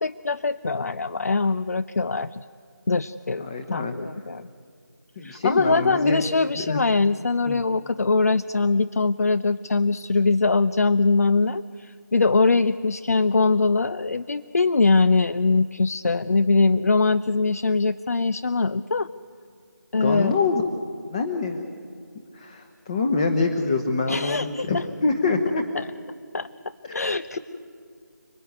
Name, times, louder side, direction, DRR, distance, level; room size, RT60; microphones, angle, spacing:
voice 1, 0.0-2.4 2.9-4.5 5.2-19.1 19.9-20.3 24.1-24.8 25.7-25.9 26.3-26.5 26.9-27.4, left 3 dB, 50° left, 15 dB, 0.6 m, -22 dB
voice 2, 3.4-3.9 5.2-6.2 6.6-6.8 7.5-7.6 19.9-20.6 21.1-21.7 22.3-25.6 26.8-27.0, left 4 dB, 20° left, 6 dB, 1.1 m, -25 dB
30.0 x 19.5 x 9.5 m, 2.2 s
figure-of-eight pair, 170°, 10 cm